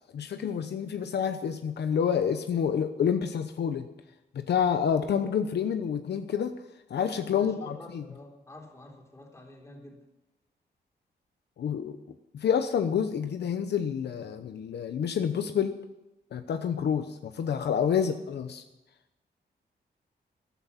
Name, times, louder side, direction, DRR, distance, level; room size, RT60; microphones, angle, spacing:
voice 1, 0.1-3.9 4.3-6.5 6.9-8.0 11.6-12.0 12.3-15.7 16.3-18.6, left 7 dB, 75° left, 8 dB, 0.9 m, -28 dB
voice 2, 7.3-10.0 17.8-18.1, left 2 dB, 15° left, 0 dB, 3.6 m, -48 dB
14.5 x 12.5 x 5.8 m, 0.99 s
wide cardioid pair, 150°, 18 cm